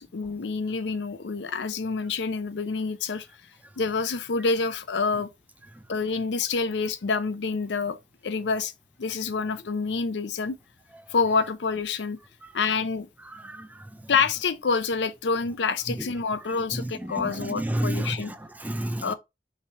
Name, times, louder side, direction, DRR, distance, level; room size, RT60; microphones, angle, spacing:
voice 1, 0.0-3.3 3.8-5.3 5.9-8.0 8.2-8.7 9.0-10.6 11.1-12.2 12.5-13.1 14.1-18.3 19.0-19.1, left 4 dB, 80° left, 0.5 m, -27 dB
voice 2, 13.3-14.1 16.0-16.1 16.7-19.1, right 1 dB, 10° right, 0.4 m, -31 dB
5.7 x 3.2 x 2.8 m
head